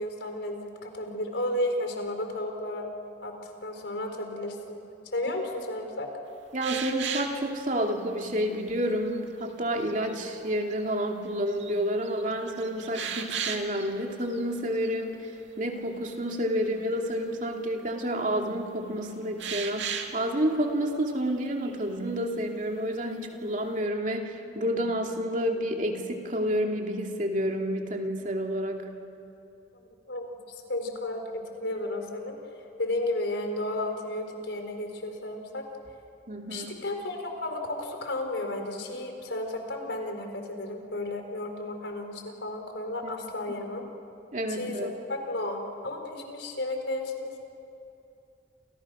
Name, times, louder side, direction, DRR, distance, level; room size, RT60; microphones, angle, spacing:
voice 1, 0.0-2.9 3.2-4.8 5.1-6.1 30.1-30.2 30.7-32.4 32.8-35.7 36.5-43.9 44.5-47.4, left 1 dB, 80° left, 4 dB, 4.5 m, -33 dB
voice 2, 6.5-15.3 15.6-28.9 36.3-36.7 43.0-43.1 44.3-44.9, equal, 45° right, 2 dB, 2.7 m, -29 dB
sound 1, 6.6-7.4 8.1-8.2 8.7-9.2 9.7-10.2 10.8-10.9 11.3-11.8 12.0-13.9 14.2-14.4 14.7-14.9 19.4-20.2 21.2-21.8, right 7 dB, 80° right, 2.3 m, -35 dB
29.0 x 29.0 x 6.4 m, 2.7 s
head